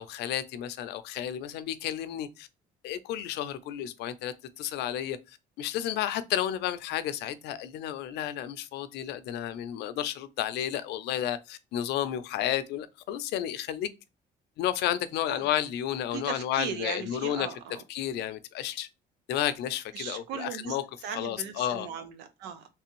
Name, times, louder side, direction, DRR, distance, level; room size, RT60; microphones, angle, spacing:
voice 1, 0.0-2.5 2.8-5.2 5.6-13.9 14.6-17.5 17.9-18.9 19.3-20.8 21.1-21.9, left 11 dB, 80° left, 0.5 m, -32 dB
voice 2, 16.1-17.8 19.9-20.8 21.0-22.7, right 8 dB, 85° right, 0.7 m, -38 dB
3.3 x 3.3 x 3.0 m
cardioid pair, 110°, 17 cm